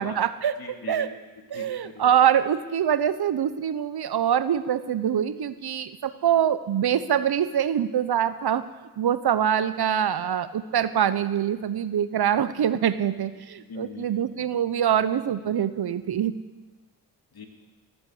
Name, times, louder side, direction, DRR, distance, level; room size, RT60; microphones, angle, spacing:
voice 1, 0.0-0.5 0.9-1.1 1.5-8.6 9.0-16.3, right 9 dB, 65° right, 14 dB, 0.9 m, -24 dB
voice 2, 0.6-2.1 13.6-14.2 17.3-17.5, left 4 dB, 60° left, 4 dB, 2.4 m, -41 dB
17.0 x 7.8 x 7.9 m, 1.2 s
supercardioid pair, 45°, 41 cm